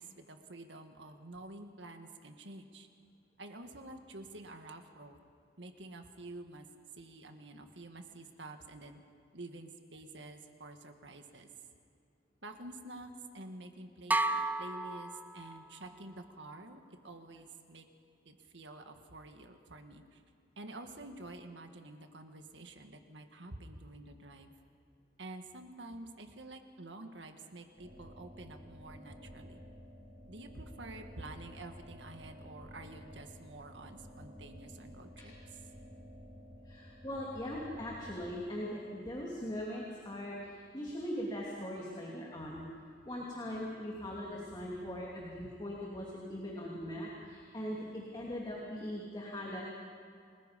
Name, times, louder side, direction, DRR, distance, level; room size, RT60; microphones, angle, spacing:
voice 1, 0.0-2.9 3.4-5.2 5.6-6.7 7.0-9.0 9.3-11.5 12.4-17.9 18.3-20.2 20.6-24.5 25.2-29.6 30.3-35.3, right 2 dB, 90° right, 6 dB, 1.8 m, -49 dB
sound 1, 14.1-15.9, right 2 dB, 10° right, 0.6 m, -33 dB
sound 2, 27.8-38.3, equal, 70° right, 7.1 m, -52 dB
voice 2, 36.7-42.6 43.0-49.6, equal, 25° left, -4 dB, 2.9 m, -40 dB
29.0 x 20.5 x 5.3 m, 2.4 s
head